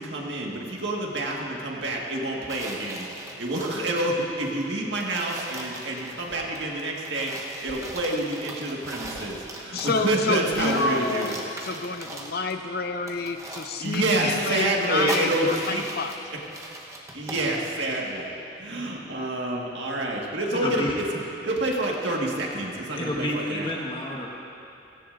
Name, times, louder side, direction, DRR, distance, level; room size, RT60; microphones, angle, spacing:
voice 1, 0.0-11.4 13.8-15.8 17.1-21.0 21.4-23.8, right 1 dB, 70° right, -2 dB, 1.9 m, -28 dB
sound 1, 2.5-4.1 4.6-4.7 4.9-10.2 10.5-12.6 13.1-17.5, right 1 dB, 15° right, 1.1 m, -39 dB
sound 2, 6.2-6.6 7.7-8.0 9.0-9.4 10.5-10.8, left 1 dB, 85° left, 3.3 m, -43 dB
voice 2, 9.7-16.1, left 3 dB, 55° left, 7 dB, 0.6 m, -28 dB
voice 3, 20.6-21.2 23.0-24.3, left 1 dB, 25° left, -2 dB, 1.6 m, -30 dB
17.5 x 17.0 x 2.7 m, 2.7 s
head